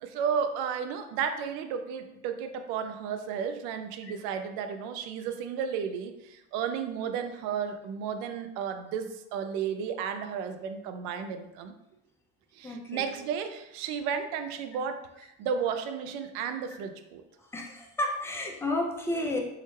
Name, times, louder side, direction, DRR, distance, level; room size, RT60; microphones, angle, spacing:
voice 1, 0.0-11.7 12.5-17.2, right 7 dB, 55° right, 7 dB, 0.5 m, -33 dB
voice 2, 12.6-13.1 17.4-19.4, left 1 dB, 5° left, 0 dB, 0.5 m, -31 dB
3.0 x 2.3 x 3.1 m, 0.87 s
hypercardioid pair, 65°, 42 cm